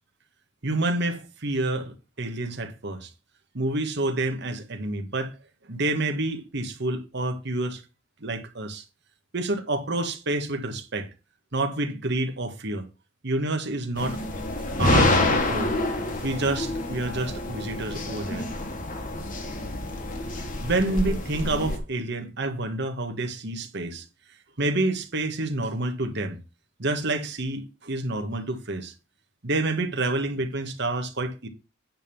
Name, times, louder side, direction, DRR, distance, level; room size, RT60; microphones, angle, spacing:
voice 1, 0.6-3.1 3.5-5.3 5.6-7.8 8.2-8.8 9.3-11.1 11.5-12.9 13.2-14.2 14.8-15.8 16.2-18.5 20.6-24.1 24.6-26.4 26.8-28.9 29.4-31.5, right 2 dB, 60° right, 1.4 m, -28 dB
sound 1, 14.0-21.8, left 2 dB, 40° left, 1.5 m, -27 dB
9.7 x 3.6 x 6.9 m
head